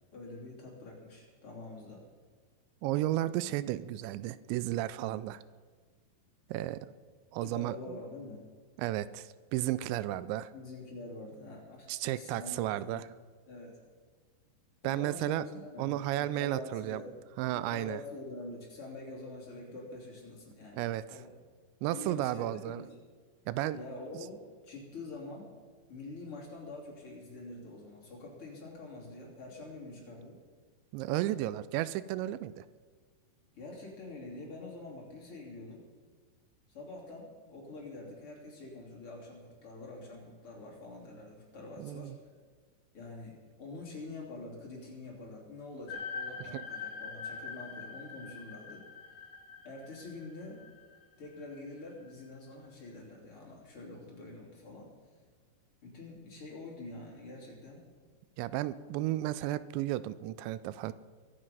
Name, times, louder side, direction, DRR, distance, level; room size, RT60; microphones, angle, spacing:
voice 1, 0.1-2.0 7.4-8.5 10.5-13.0 13.5-13.8 14.8-17.1 17.5-21.3 21.9-22.9 23.7-25.5 25.9-30.4 33.5-35.8 36.7-42.1 42.9-48.9 49.6-50.6 51.2-54.9 55.8-57.8, left 2 dB, 35° left, -3 dB, 3.5 m, -46 dB
voice 2, 2.8-5.4 6.5-6.9 7.3-8.0 8.8-10.5 11.9-13.1 14.8-17.0 17.4-18.0 20.7-21.2 21.8-22.8 23.5-23.8 24.1-24.3 30.9-32.7 41.8-42.2 46.4-46.6 58.4-60.9, right 14 dB, 85° right, 16 dB, 2.8 m, -33 dB
sound 1, 45.9-52.1, left 5 dB, 55° left, 2.4 m, -44 dB
23.0 x 8.8 x 5.4 m, 1.5 s
omnidirectional pair, 5.2 m